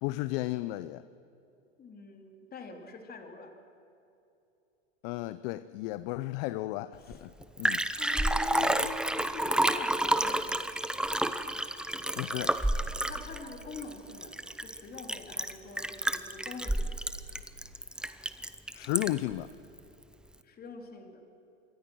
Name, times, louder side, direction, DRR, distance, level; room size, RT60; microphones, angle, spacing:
voice 1, 0.0-1.0 5.0-7.3 7.6-7.9 12.2-12.6 18.7-19.5, left 17 dB, 50° left, 14 dB, 0.7 m, -34 dB
voice 2, 1.8-3.6 8.0-10.6 13.1-16.9 20.4-21.2, left 4 dB, 25° left, 4 dB, 3.2 m, -44 dB
Liquid, 7.1-7.2 7.4-19.3 19.8-19.9, right 1 dB, ahead, 0.7 m, -30 dB
26.5 x 22.0 x 6.3 m, 2.8 s
hypercardioid pair, 120°, 36 cm